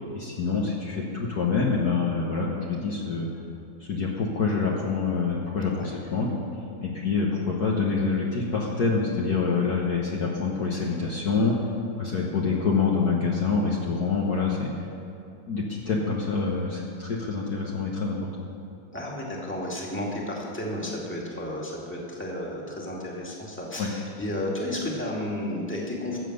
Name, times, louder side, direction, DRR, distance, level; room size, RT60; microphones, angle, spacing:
voice 1, 0.1-3.3 3.8-6.3 6.8-11.6 12.0-14.7 15.5-18.3 23.8-23.9, left 4 dB, 50° left, -3 dB, 1.6 m, -26 dB
voice 2, 18.9-26.2, left 1 dB, 5° left, -3 dB, 2.1 m, -32 dB
14.0 x 7.5 x 8.1 m, 2.8 s
omnidirectional pair, 2.3 m